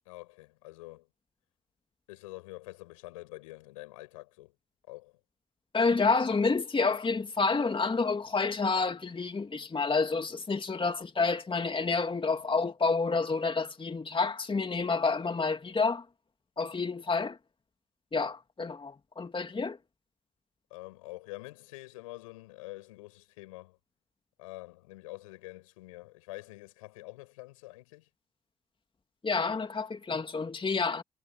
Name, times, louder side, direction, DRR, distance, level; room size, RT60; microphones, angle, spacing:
voice 1, 0.1-1.1 2.1-4.5 4.9-5.2 20.7-23.8 24.4-28.1, left 21 dB, 85° left, 7.9 m, -46 dB
voice 2, 5.7-16.0 16.6-17.4 18.1-19.8 29.2-31.0, left 4 dB, 30° left, 2.6 m, -29 dB
hypercardioid pair, 45°, 17 cm